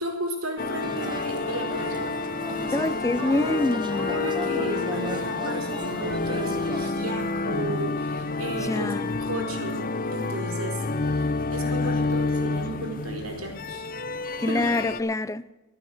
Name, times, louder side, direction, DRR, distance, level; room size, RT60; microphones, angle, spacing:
voice 1, 0.0-2.1 2.5-3.6 4.0-8.9 9.3-9.8 10.1-13.8 14.5-14.6, right 1 dB, 85° right, 4.1 m, -34 dB
sound 1, 0.6-15.0, left 3 dB, 40° left, 0.8 m, -29 dB
sound 2, 0.8-6.9, right 2 dB, 20° right, 0.8 m, -37 dB
voice 2, 2.7-4.1 8.6-9.1 14.4-15.5, left 2 dB, 15° left, 0.4 m, -26 dB
13.0 x 9.3 x 7.7 m
head